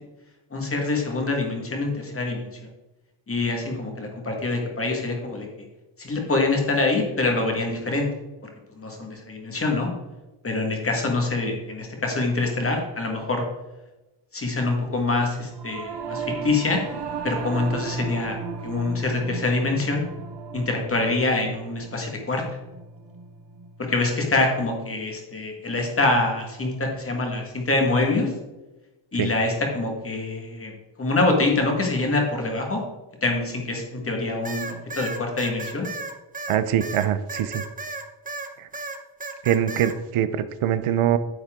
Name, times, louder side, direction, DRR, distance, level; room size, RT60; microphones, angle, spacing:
voice 1, 0.5-2.5 3.3-5.5 6.0-8.1 8.8-9.9 10.4-13.4 14.3-16.8 17.2-18.4 18.6-20.0 20.5-22.6 23.8-28.3 29.1-30.7 31.0-32.8 33.2-35.9, left 2 dB, 25° left, 1 dB, 1.9 m, -25 dB
Singing / Musical instrument, 15.5-25.1, right 5 dB, 55° right, 1.5 m, -36 dB
sound 1, 34.4-38.5 38.7-39.9, right 3 dB, 15° right, 0.8 m, -34 dB
voice 2, 36.5-37.6 38.6-38.7 39.4-41.2, right 10 dB, 85° right, 13 dB, 0.8 m, -23 dB
9.6 x 7.3 x 3.7 m, 1.1 s
wide cardioid pair, 135°, 50 cm